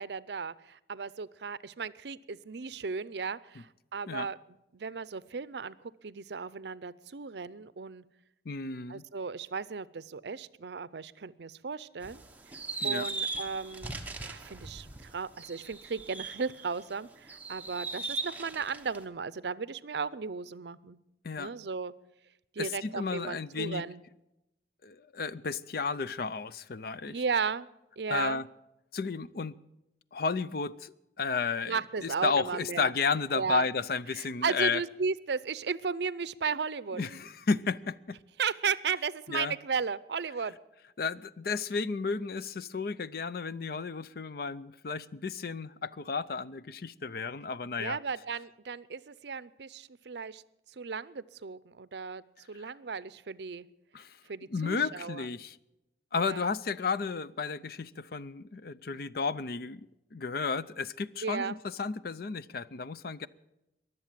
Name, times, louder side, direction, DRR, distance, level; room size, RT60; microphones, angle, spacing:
voice 1, 0.0-4.4 4.7-5.8 6.0-8.0 8.9-12.2 12.8-13.9 14.2-21.0 21.4-21.9 22.5-24.0 27.1-27.7 28.0-28.4 31.7-32.9 33.3-33.7 34.2-37.0 38.4-40.6 47.8-50.4 50.8-52.2 52.5-53.7 54.3-55.3 56.1-56.5 61.2-61.6, right 5 dB, 70° right, 18 dB, 0.6 m, -35 dB
voice 2, 8.5-9.0 12.8-13.1 21.2-21.5 22.6-23.8 24.8-27.2 28.1-28.5 28.9-29.6 30.1-34.8 36.9-38.2 39.3-39.5 41.0-48.0 52.6-52.7 53.9-54.2 54.5-55.6 56.1-63.3, left 5 dB, 55° left, 17 dB, 0.5 m, -33 dB
sound 1, 12.0-16.8 17.3-19.0, right 3 dB, 10° right, 1.2 m, -38 dB
22.0 x 7.8 x 7.5 m, 0.90 s
head